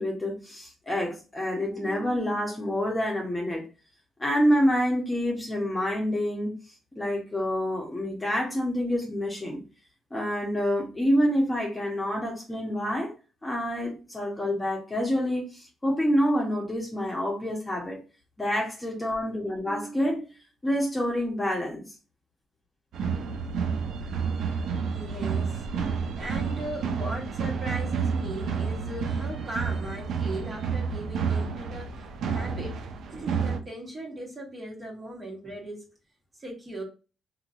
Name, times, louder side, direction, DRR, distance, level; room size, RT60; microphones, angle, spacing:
voice 1, 0.0-3.7 4.2-6.5 6.9-9.6 10.1-13.1 13.4-18.0 18.4-20.3 20.6-21.8, equal, 15° left, 1.1 m, -27 dB
sound 1, 22.9-33.6, right 6 dB, 70° right, 0.5 m, -30 dB
voice 2, 24.9-25.6 26.2-32.8 33.1-35.9 36.4-36.8, right 1 dB, 30° right, 1.5 m, -38 dB
2.8 x 2.8 x 2.6 m
cardioid pair, 90°, 0 cm